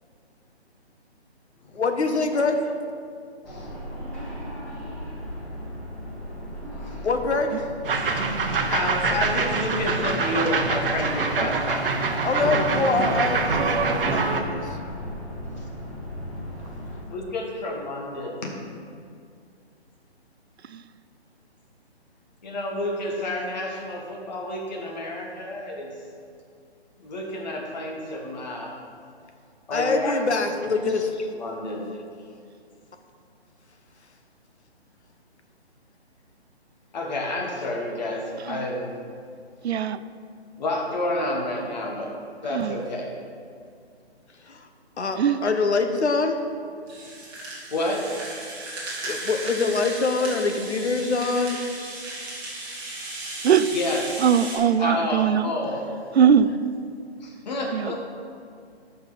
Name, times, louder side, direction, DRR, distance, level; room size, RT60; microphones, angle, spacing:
voice 1, 1.7-2.7 7.0-7.6 12.2-14.8 29.7-31.3 44.4-44.6 45.0-46.4 49.0-51.6, left 3 dB, 85° left, 6 dB, 1.1 m, -24 dB
sound 1, 3.4-17.0, equal, 5° left, 0.8 m, -37 dB
sound 2, 7.8-14.4, right 4 dB, 55° right, 0.9 m, -25 dB
voice 2, 8.7-12.6 17.1-18.5 22.4-25.9 27.0-28.8 29.7-30.2 31.3-31.9 36.9-38.9 40.6-42.1 42.4-43.1 47.7-48.1 53.7-54.2 54.8-55.9 57.2-58.0, left 1 dB, 40° left, 0 dB, 1.6 m, -29 dB
voice 3, 39.6-40.0 42.5-42.8 45.2-45.4 53.4-53.7 54.2-55.5 56.1-56.5 57.7-57.9, right 8 dB, 75° right, 14 dB, 0.5 m, -20 dB
Rattle (instrument), 46.9-54.6, right 2 dB, 15° right, 1.6 m, -36 dB
12.5 x 5.6 x 4.1 m, 2.3 s
hypercardioid pair, 155°, 33 cm